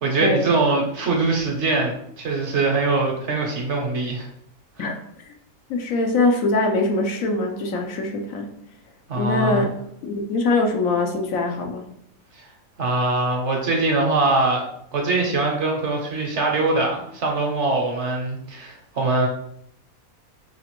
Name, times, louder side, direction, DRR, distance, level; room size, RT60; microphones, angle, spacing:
voice 1, 0.0-4.3 4.8-4.9 9.1-9.7 12.3-12.5 12.8-14.6 14.9-19.3, right 3 dB, 60° right, 1 dB, 1.0 m, -22 dB
voice 2, 5.7-8.5 9.1-9.7 10.0-11.8, left 2 dB, 70° left, 3 dB, 1.0 m, -22 dB
4.9 x 2.5 x 2.9 m, 0.70 s
omnidirectional pair, 1.5 m